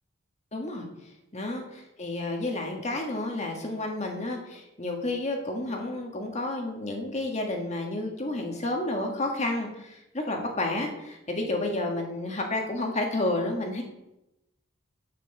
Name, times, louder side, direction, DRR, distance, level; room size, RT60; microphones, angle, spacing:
voice 1, 0.5-0.8 1.3-13.8, left 2 dB, 35° left, 2 dB, 1.6 m, -31 dB
8.1 x 7.9 x 6.6 m, 0.92 s
head